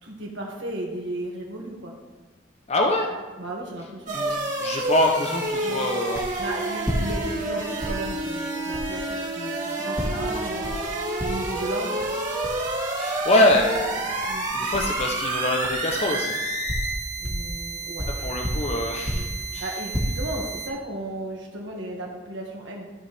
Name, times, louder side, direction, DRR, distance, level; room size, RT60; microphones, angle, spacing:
voice 1, 0.0-1.9 3.1-4.2 5.6-5.9 6.4-10.8 11.2-12.0 13.5-13.6 14.3-14.5 17.2-18.1 19.1-22.9, right 1 dB, 65° right, -2 dB, 1.8 m, -35 dB
voice 2, 2.7-3.1 4.1-6.3 13.0-14.0 14.5-16.4 18.2-19.3 19.5-19.6, left 1 dB, 35° left, 1 dB, 0.7 m, -24 dB
sound 1, 4.1-20.7, right 2 dB, 40° right, 1.9 m, -29 dB
sound 2, 6.1-6.4 6.8-7.5 7.8-8.1 8.7-8.9 10.0-10.2 10.6-10.9 11.2-11.6 12.0-12.1 12.4-12.6 13.5-13.7 14.2-14.4 14.7-15.0 15.6-15.8 16.4-17.5 18.0-19.4 19.7-20.0, equal, 5° right, 1.6 m, -30 dB
14.0 x 4.7 x 3.3 m, 1.2 s
head